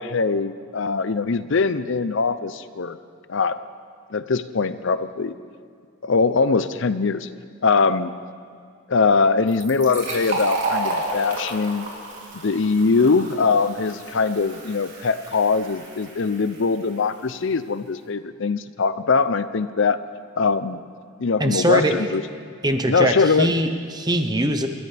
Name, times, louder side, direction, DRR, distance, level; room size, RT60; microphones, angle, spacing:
voice 1, 0.0-3.0 3.3-3.6 4.1-5.3 6.0-7.3 7.6-8.1 8.9-11.9 12.3-20.0 20.4-20.8 21.2-22.2 22.9-23.5, left 4 dB, 60° left, 13 dB, 0.6 m, -22 dB
Fill (with liquid), 9.5-16.8, right 2 dB, 60° right, 3.3 m, -31 dB
voice 2, 21.4-22.2 22.6-24.7, right 1 dB, 20° right, 6 dB, 0.9 m, -22 dB
28.5 x 14.0 x 3.5 m, 2.2 s
head